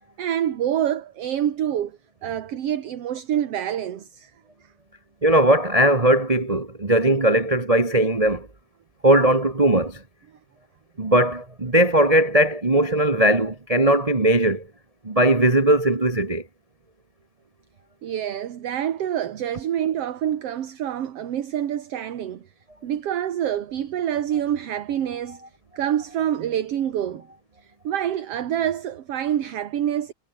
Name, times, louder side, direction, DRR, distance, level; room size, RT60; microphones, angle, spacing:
voice 1, 0.2-4.3 18.0-22.5 22.8-25.4 25.8-27.3 27.6-30.1, right 10 dB, 60° right, 2.3 m, -26 dB
voice 2, 5.2-8.5 9.0-10.0 11.0-14.6 15.0-16.4, right 1 dB, 75° right, 0.3 m, -19 dB
omnidirectional pair, 3.4 m